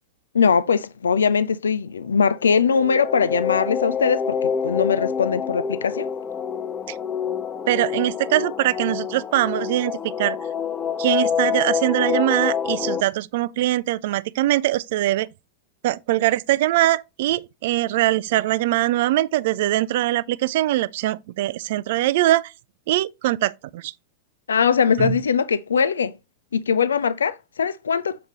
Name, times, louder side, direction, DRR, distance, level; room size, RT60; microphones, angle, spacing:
voice 1, 0.3-6.1 24.5-26.1 26.5-28.2, left 6 dB, 70° left, 0.3 m, -21 dB
sound 1, 2.3-13.0, left 7 dB, 20° left, 0.6 m, -27 dB
voice 2, 7.7-10.4 11.0-15.3 15.8-22.5 22.9-23.9 25.0-25.2, right 15 dB, 55° right, 0.3 m, -22 dB
6.8 x 5.0 x 2.9 m
figure-of-eight pair, 90°, 0 cm